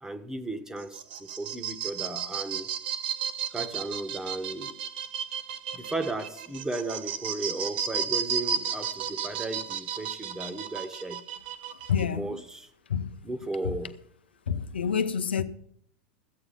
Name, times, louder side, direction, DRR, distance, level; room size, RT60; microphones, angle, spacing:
voice 1, 0.0-2.7 3.5-4.8 5.7-11.3 12.0-12.7 13.2-14.0, right 2 dB, 10° right, 1.3 m, -35 dB
sound 1, 0.8-12.0, right 8 dB, 70° right, 0.9 m, -33 dB
voice 2, 11.7-12.4 12.9-13.1 13.6-13.8 14.5-15.4, left 7 dB, 90° left, 0.8 m, -28 dB
13.5 x 8.6 x 5.8 m
hypercardioid pair, 100°, 5 cm